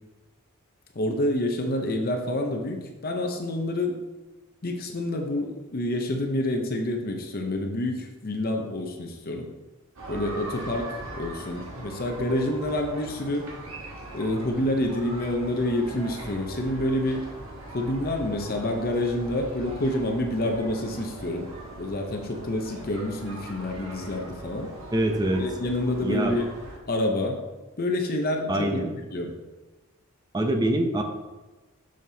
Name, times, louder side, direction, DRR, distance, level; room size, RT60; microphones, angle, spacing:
voice 1, 0.9-4.0 4.6-9.5 10.1-10.9 11.1-13.5 14.1-17.2 17.7-21.5 21.8-24.7 25.4-26.4 26.9-27.4 27.8-29.3, left 1 dB, 45° left, 3 dB, 0.8 m, -28 dB
sound 1, 10.0-26.8, right 1 dB, 65° right, 1.3 m, -41 dB
voice 2, 24.9-25.4 26.0-26.3 28.5-28.9 30.3-31.0, right 1 dB, 20° right, 4 dB, 0.6 m, -24 dB
7.2 x 6.5 x 2.8 m, 1.2 s
head